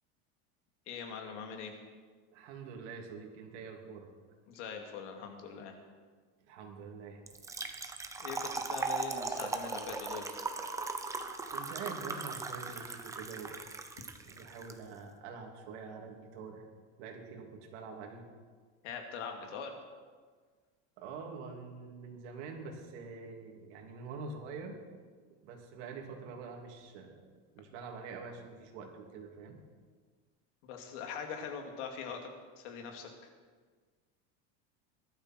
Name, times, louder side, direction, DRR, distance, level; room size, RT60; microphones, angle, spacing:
voice 1, 0.9-1.7 4.5-5.7 8.2-10.3 18.8-19.8 30.6-32.3 32.6-33.1, left 6 dB, 85° left, 3 dB, 2.8 m, -42 dB
voice 2, 2.3-4.1 6.5-7.2 11.5-13.6 14.2-16.6 17.0-18.2 21.0-24.8 25.4-27.3 27.5-29.6, right 5 dB, 80° right, 2 dB, 3.1 m, -45 dB
Trickle dribble / Fill (with liquid), 7.3-14.7, right 3 dB, 10° right, 0.7 m, -38 dB
19.5 x 12.5 x 4.6 m, 1.5 s
cardioid pair, 160°, 34 cm